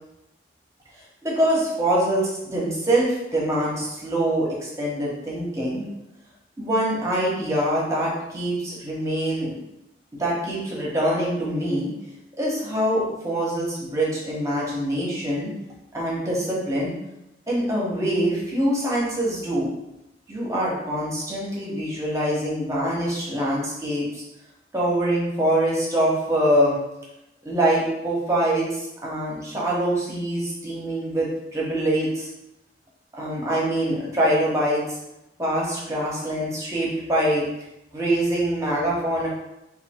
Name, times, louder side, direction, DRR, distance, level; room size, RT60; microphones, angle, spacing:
voice 1, 1.2-5.9 6.6-9.5 10.1-11.9 12.4-15.5 15.9-16.9 17.5-19.7 20.3-24.2 24.7-26.8 27.4-32.3 33.1-34.8 35.4-37.4 37.9-39.3, right 1 dB, 20° right, -5 dB, 1.1 m, -24 dB
3.3 x 2.6 x 4.3 m, 0.89 s
head